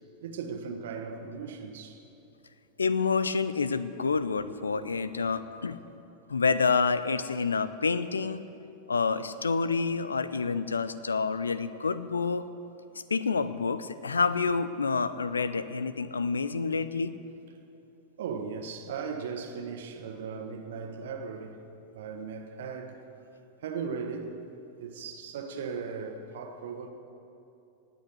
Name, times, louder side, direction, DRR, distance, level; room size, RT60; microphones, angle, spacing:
voice 1, 0.2-2.0 4.7-5.0 18.2-21.6 21.9-23.0 23.6-24.4 24.8-26.9, right 5 dB, 60° right, 1.5 m, -37 dB
voice 2, 2.8-5.8 6.3-8.4 8.9-12.5 13.1-17.1, left 5 dB, 75° left, 0.6 m, -28 dB
18.0 x 8.4 x 8.2 m
figure-of-eight pair, 90°, 0 cm